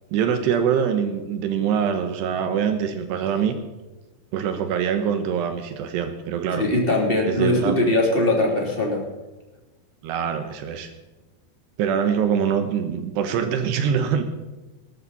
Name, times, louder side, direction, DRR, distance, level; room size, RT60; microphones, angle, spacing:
voice 1, 0.1-3.6 4.3-6.7 7.3-7.8 10.0-10.9 11.8-14.2, right 7 dB, 80° right, 8 dB, 3.2 m, -24 dB
voice 2, 6.5-9.0, left 1 dB, 15° left, -1 dB, 2.6 m, -21 dB
19.0 x 13.0 x 4.1 m, 1.1 s
omnidirectional pair, 4.9 m